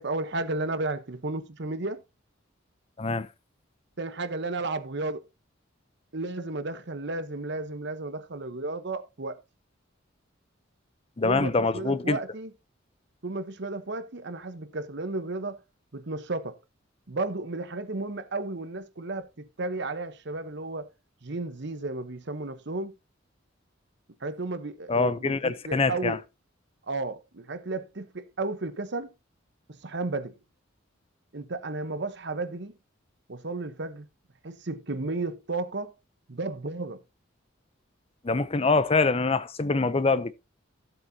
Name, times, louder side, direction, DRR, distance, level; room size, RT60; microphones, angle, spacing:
voice 1, 0.0-2.0 4.0-5.2 6.1-9.4 11.2-12.5 13.2-15.6 15.9-16.6 17.1-20.9 21.2-22.9 24.2-26.2 26.9-29.1 29.7-30.3 31.3-32.7 33.3-34.1 34.4-35.9 36.3-37.0, right 2 dB, 60° right, 1.0 m, -33 dB
voice 2, 11.2-12.2 24.9-26.2 38.2-40.3, left 3 dB, 30° left, 0.6 m, -24 dB
13.5 x 7.9 x 2.8 m
head